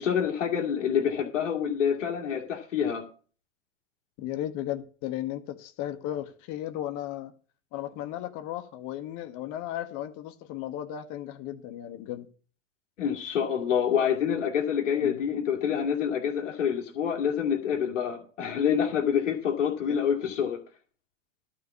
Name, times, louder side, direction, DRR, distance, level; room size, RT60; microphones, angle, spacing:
voice 1, 0.0-3.0 13.0-20.6, left 8 dB, 80° left, 2.3 m, -27 dB
voice 2, 4.2-7.3 7.7-12.3 15.0-15.2 19.9-20.0, left 12 dB, 55° left, 1.6 m, -35 dB
12.5 x 5.1 x 8.3 m
hypercardioid pair, 90°, 36 cm